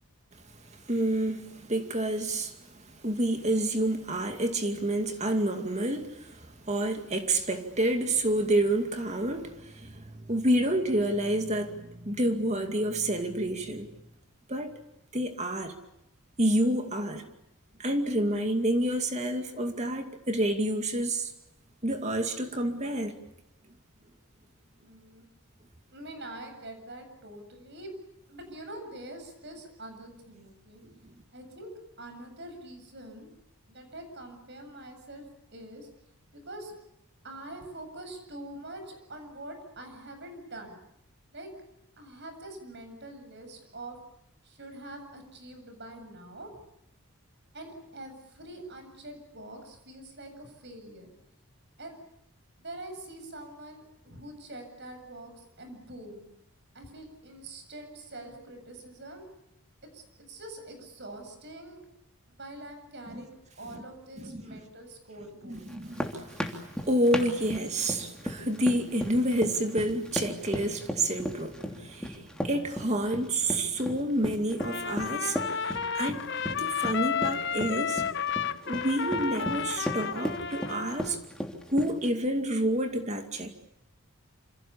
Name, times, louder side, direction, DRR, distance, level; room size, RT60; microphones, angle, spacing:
voice 1, 0.3-14.0 14.5-14.7 15.1-15.8 16.4-17.3 17.8-21.3 21.8-23.1 30.8-30.9 63.1-63.2 63.7-63.8 64.2-64.6 65.4-78.0 78.7-81.2 81.7-83.5, right 1 dB, 30° right, 2.4 m, -29 dB
voice 2, 24.8-25.2 25.9-27.9 28.3-30.8 31.3-31.7 32.0-33.3 33.7-35.3 35.5-35.9 36.3-36.7 37.2-40.8 41.3-41.5 42.0-44.0 44.4-46.5 47.5-51.1 51.8-52.0 52.6-56.2 56.7-59.2 59.8-61.8 62.4-65.6, right 1 dB, 50° right, 7.8 m, -44 dB
sound 1, 65.7-82.1, equal, 5° left, 3.0 m, -36 dB
Trumpet, 74.6-81.2, left 7 dB, 50° left, 0.9 m, -32 dB
28.0 x 28.0 x 7.1 m
head